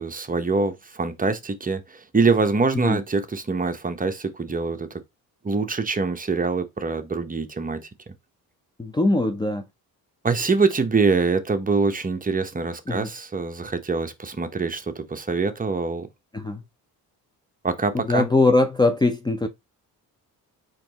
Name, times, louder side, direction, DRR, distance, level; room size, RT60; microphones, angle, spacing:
voice 1, 0.0-4.9 5.4-7.8 10.2-16.1 17.6-18.3, right 4 dB, 20° right, 0.8 m, -24 dB
voice 2, 8.8-9.6 12.9-13.1 16.3-16.6 17.9-19.5, left 2 dB, 10° left, 0.5 m, -21 dB
4.4 x 3.1 x 3.9 m
cardioid pair, 90°, 38 cm